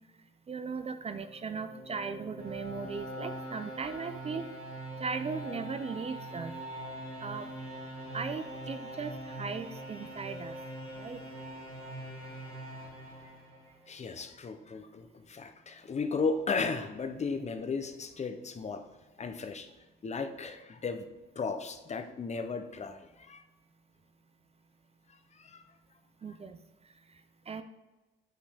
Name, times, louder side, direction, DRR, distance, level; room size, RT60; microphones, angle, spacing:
voice 1, 0.5-4.5 5.0-6.5 7.2-7.5 8.1-10.5 11.0-11.2 26.2-26.6 27.5-27.6, right 5 dB, 30° right, 10 dB, 0.4 m, -38 dB
sound 1, 0.9-13.9, right 1 dB, 85° right, 2.1 m, -43 dB
voice 2, 13.9-18.8 19.2-19.7 20.0-21.1 21.4-23.4 25.4-25.6, left 4 dB, 35° left, 8 dB, 0.6 m, -35 dB
7.7 x 5.3 x 3.4 m, 1.1 s
cardioid pair, 90°, 20 cm